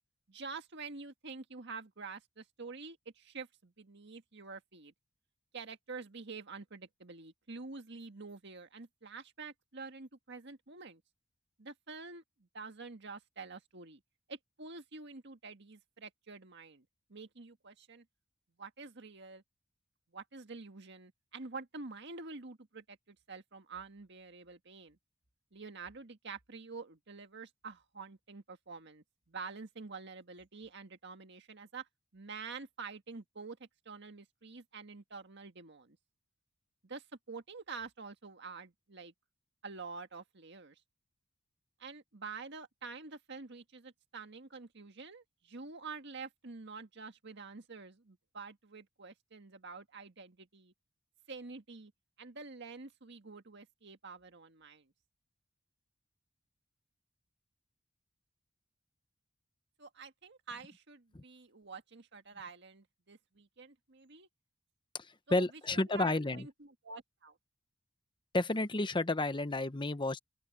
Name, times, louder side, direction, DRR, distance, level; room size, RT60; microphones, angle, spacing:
voice 1, 0.3-4.9 5.5-11.0 11.6-14.0 14.3-18.1 18.6-19.4 20.1-25.0 25.5-31.9 32.1-36.0 36.8-39.1 39.6-40.8 41.8-50.7 51.3-51.9 52.2-54.9 59.8-64.3 65.3-65.4 65.7-67.4, right 4 dB, 60° right, 1.8 m, -48 dB
voice 2, 65.0-66.5 68.3-70.2, left 2 dB, 25° left, 1.0 m, -31 dB
open air
head